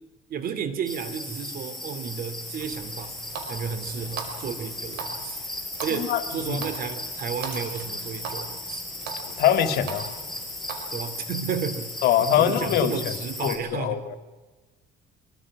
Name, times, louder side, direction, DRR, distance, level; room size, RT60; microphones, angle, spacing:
voice 1, 0.3-3.2 3.5-5.4 5.8-8.8 10.9-11.9 12.4-14.1, right 6 dB, 60° right, 11 dB, 2.8 m, -32 dB
sound 1, 0.9-13.6, left 2 dB, ahead, 7.7 m, -36 dB
Water tap faucet, 2.6-10.8, right 5 dB, 80° right, 5.0 m, -40 dB
voice 2, 9.4-10.1 12.0-12.9 13.4-14.2, left 10 dB, 75° left, 9 dB, 2.1 m, -23 dB
24.0 x 23.5 x 6.2 m, 1.3 s
cardioid pair, 110°, 17 cm